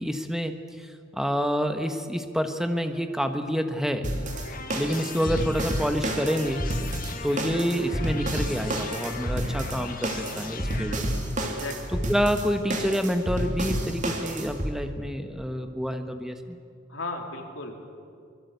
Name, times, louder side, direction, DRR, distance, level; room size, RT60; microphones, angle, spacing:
voice 1, 0.0-4.0 4.7-6.6 7.2-11.2 12.1-16.6, equal, ahead, 7 dB, 1.3 m, -28 dB
sound 1, 4.0-14.7, right 1 dB, 40° right, 2.8 m, -30 dB
sound 2, 4.1-10.9, left 4 dB, 45° left, 1.7 m, -39 dB
voice 2, 11.4-12.0 16.9-17.8, left 2 dB, 80° left, 1 dB, 3.8 m, -36 dB
24.0 x 22.5 x 8.2 m, 2.3 s
head